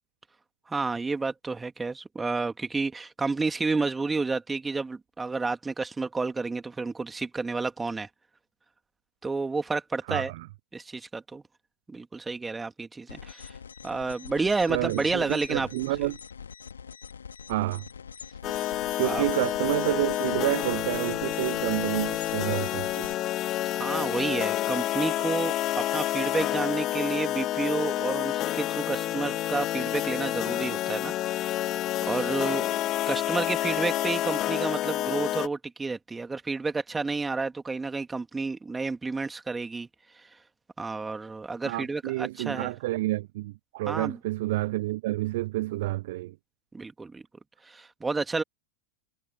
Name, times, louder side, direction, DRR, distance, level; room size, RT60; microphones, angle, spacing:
voice 1, 0.7-8.1 9.2-10.3 10.7-11.4 11.9-13.5 13.8-15.7 19.0-19.2 23.7-31.7 32.0-32.7 33.1-39.9 40.8-42.7 43.9-44.2 46.7-47.2 47.7-48.4, right 3 dB, 15° right, 2.7 m, -30 dB
voice 2, 10.1-10.5 14.7-16.2 17.5-17.8 19.0-23.2 41.6-46.3, right 18 dB, 60° right, 0.5 m, -29 dB
sound 1, 13.1-23.1, left 7 dB, 80° left, 2.5 m, -44 dB
sound 2, 18.4-35.5, left 14 dB, 40° left, 0.5 m, -29 dB
figure-of-eight pair, 90°, 0 cm